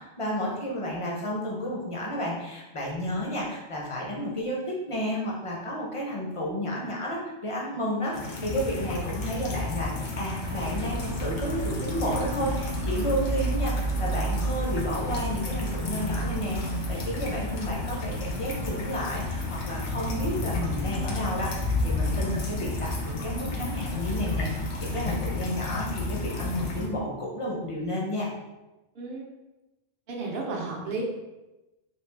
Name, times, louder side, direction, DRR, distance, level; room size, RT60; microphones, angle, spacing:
voice 1, 0.0-28.3, equal, 35° left, -3 dB, 0.6 m, -32 dB
sound 1, 8.1-26.9, left 2 dB, 70° left, 1.0 m, -32 dB
sound 2, 10.4-25.4, right 3 dB, 70° right, 1.1 m, -35 dB
voice 2, 28.9-29.3 30.1-31.0, right 3 dB, 55° right, -1 dB, 0.8 m, -33 dB
3.2 x 2.8 x 3.3 m, 1.0 s
omnidirectional pair, 1.3 m